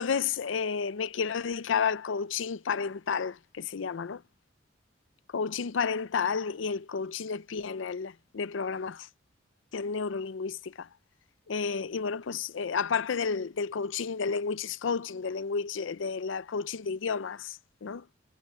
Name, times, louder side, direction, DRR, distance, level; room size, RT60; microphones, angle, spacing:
voice 1, 0.0-4.2 5.3-9.1 9.7-10.9 11.5-18.0, left 5 dB, 90° left, 0.5 m, -31 dB
head